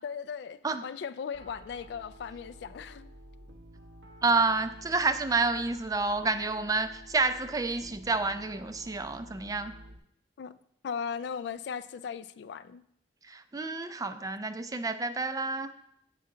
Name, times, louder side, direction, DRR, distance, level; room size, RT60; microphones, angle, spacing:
voice 1, 0.0-3.1 10.4-10.5 10.8-12.8, left 6 dB, 70° left, 14 dB, 0.3 m, -37 dB
Piano, 1.3-10.0, equal, 85° right, 1.0 m, -51 dB
voice 2, 4.2-9.7 13.3-15.7, right 3 dB, 20° right, 10 dB, 0.4 m, -29 dB
8.2 x 5.6 x 3.7 m, 0.73 s
head